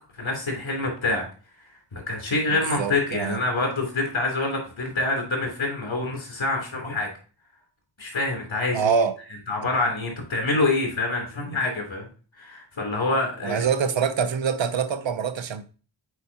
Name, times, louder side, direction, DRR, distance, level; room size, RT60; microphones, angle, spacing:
voice 1, 0.1-1.2 1.9-7.1 8.0-9.0 9.5-12.1 12.4-13.7, left 2 dB, 80° left, 3.0 m, -26 dB
voice 2, 2.5-3.4 8.7-9.2 13.4-15.6, right 6 dB, 75° right, 0.7 m, -25 dB
8.2 x 4.6 x 2.8 m
wide cardioid pair, 60°, 46 cm